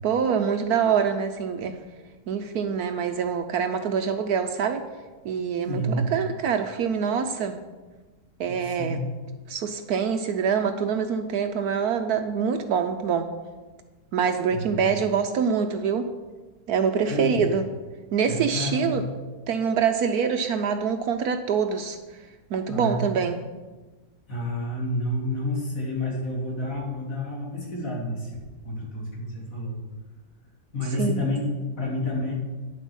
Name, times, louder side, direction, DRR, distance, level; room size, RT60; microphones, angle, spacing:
voice 1, 0.0-1.8 2.3-4.8 5.2-7.5 8.4-9.0 9.5-13.3 14.1-16.1 16.7-17.6 18.1-19.0 19.5-22.0 22.5-23.4 31.0-31.3, right 6 dB, 70° right, 7 dB, 1.1 m, -25 dB
voice 2, 5.7-6.1 8.5-9.0 14.5-14.9 17.1-17.5 18.3-19.0 22.7-23.1 24.3-28.3 28.6-29.7 30.7-32.3, left 1 dB, 50° left, -4 dB, 3.3 m, -29 dB
9.9 x 7.7 x 6.2 m, 1.3 s
omnidirectional pair, 1.9 m